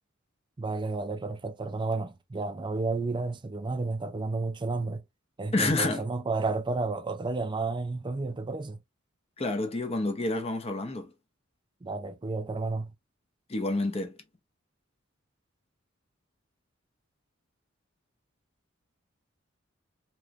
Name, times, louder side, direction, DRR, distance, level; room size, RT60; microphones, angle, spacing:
voice 1, 0.6-5.0 5.4-8.8 11.8-12.9, right 3 dB, 25° right, 0.4 m, -31 dB
voice 2, 5.5-6.0 9.4-11.1 13.5-14.2, left 2 dB, 30° left, 0.7 m, -28 dB
3.2 x 2.9 x 2.4 m
head